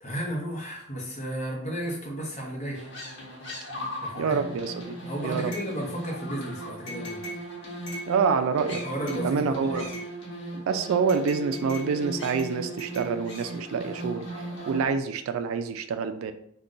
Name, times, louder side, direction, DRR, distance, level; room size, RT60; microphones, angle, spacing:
voice 1, 0.0-3.1 4.0-4.4 5.0-7.2 8.7-9.8, equal, 35° left, -1 dB, 0.7 m, -34 dB
sound 1, 2.7-14.9, right 1 dB, 55° left, 0.9 m, -37 dB
voice 2, 4.2-5.0 5.2-5.5 8.1-8.8 9.1-9.9 10.5-14.3 14.7-16.3, right 5 dB, 75° right, 9 dB, 0.3 m, -27 dB
2.4 x 2.2 x 3.7 m, 0.69 s
head